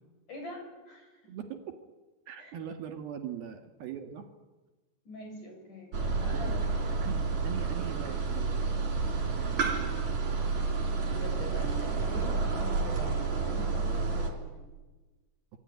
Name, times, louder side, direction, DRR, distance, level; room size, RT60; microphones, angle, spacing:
voice 1, 0.3-1.3 2.4-2.5 5.1-6.9 11.0-14.7, left 2 dB, 50° left, 3 dB, 7.9 m, -44 dB
voice 2, 1.3-1.8 2.3-4.3 6.1-6.6 7.0-8.7 9.3-9.8, right 8 dB, 65° right, 6 dB, 3.4 m, -41 dB
sound 1, 5.9-14.3, right 4 dB, 45° right, 4.6 m, -30 dB
26.0 x 23.5 x 9.6 m, 1.2 s
omnidirectional pair, 4.8 m